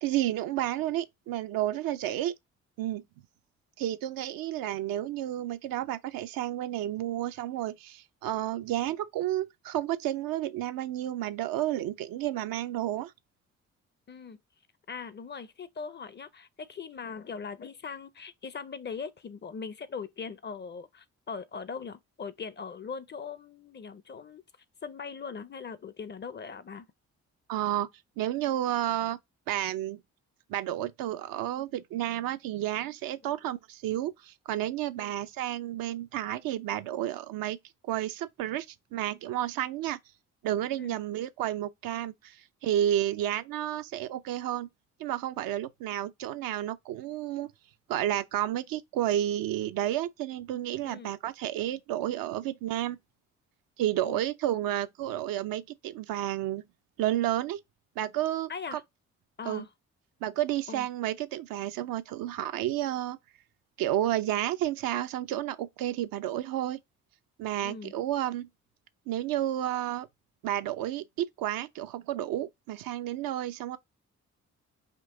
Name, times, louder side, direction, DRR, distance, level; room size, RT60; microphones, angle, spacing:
voice 1, 0.0-2.3 2.8-3.0 3.8-13.1 27.5-27.9 28.2-29.2 29.5-30.0 30.5-37.6 37.8-38.7 38.9-40.0 40.4-42.4 42.6-44.7 45.0-47.5 47.9-53.0 53.8-56.6 57.0-57.6 58.0-58.8 59.5-59.6 60.2-63.2 63.8-66.8 67.4-68.5 69.1-70.1 70.4-73.8, right 13 dB, 70° right, 0.5 m, -31 dB
voice 2, 14.1-14.4 14.9-24.4 24.8-26.9 33.2-33.4 35.0-35.2 40.8-41.0 50.8-51.1 54.0-54.2 58.5-58.8 59.4-59.7 60.7-60.9 67.6-67.9, left 5 dB, 30° left, 0.5 m, -40 dB
3.7 x 2.6 x 3.6 m
hypercardioid pair, 40°, 37 cm